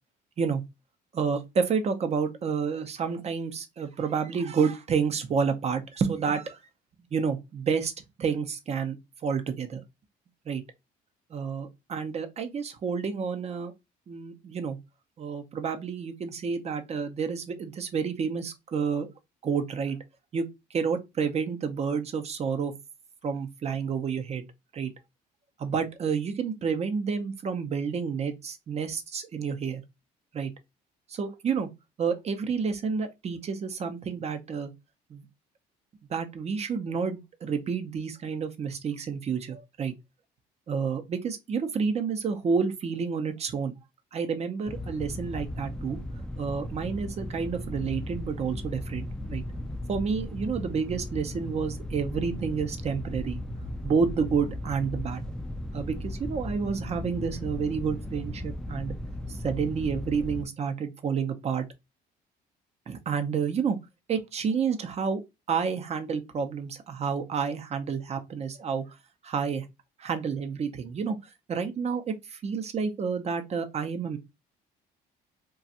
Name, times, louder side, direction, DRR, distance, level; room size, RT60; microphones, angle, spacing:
voice 1, 1.1-6.6 7.1-7.9 8.2-9.0 9.2-9.8 10.5-10.6 11.3-13.7 14.1-14.8 15.2-19.1 19.4-20.0 20.3-22.7 23.2-24.5 24.7-24.9 25.6-29.8 30.3-30.5 31.1-31.7 32.0-34.7 35.1-35.3 36.1-39.9 40.7-43.8 44.1-46.0 46.4-49.4 49.9-53.4 53.8-55.2 55.7-58.9 59.3-61.7 62.9-63.8 64.1-65.2 65.5-69.0 69.2-69.7 70.0-71.2 71.5-74.2, right 6 dB, 40° right, 0.7 m, -29 dB
sound 1, 44.7-60.4, left 1 dB, 5° left, 0.4 m, -36 dB
2.5 x 2.3 x 4.0 m
cardioid pair, 110°, 17 cm